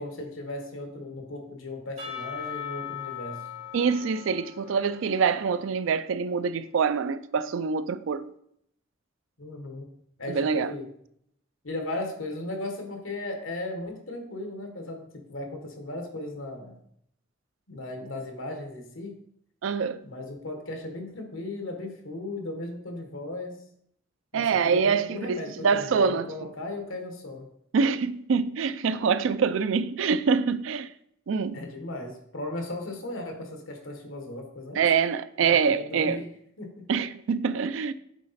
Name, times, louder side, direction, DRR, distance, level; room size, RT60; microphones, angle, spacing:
voice 1, 0.0-3.5 9.4-9.9 10.2-10.9 11.6-16.8 17.7-19.2 20.0-23.6 24.3-27.5 31.5-34.8 35.6-36.2 36.6-36.8, left 2 dB, 80° left, 1.4 m, -36 dB
Percussion / Church bell, 2.0-6.1, left 9 dB, 30° right, 2.2 m, -40 dB
voice 2, 3.7-8.3 10.3-10.7 19.6-20.0 24.3-26.5 27.7-30.9 31.3-31.6 34.7-36.2 36.9-37.9, right 5 dB, 70° right, 0.4 m, -25 dB
8.1 x 3.9 x 4.2 m
head